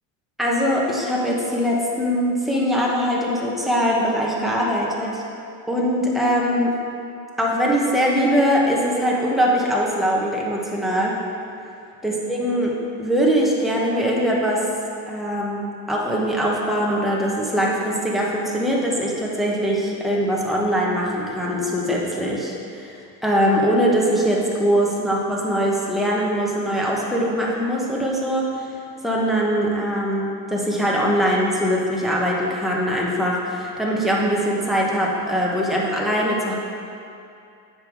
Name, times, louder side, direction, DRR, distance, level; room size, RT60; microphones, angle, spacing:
voice 1, 0.4-5.2 5.7-6.8 7.4-11.2 12.0-14.6 15.1-28.5 29.0-36.5, equal, ahead, -4 dB, 0.8 m, -22 dB
8.9 x 5.3 x 4.6 m, 2.6 s
cardioid pair, 160°, 41 cm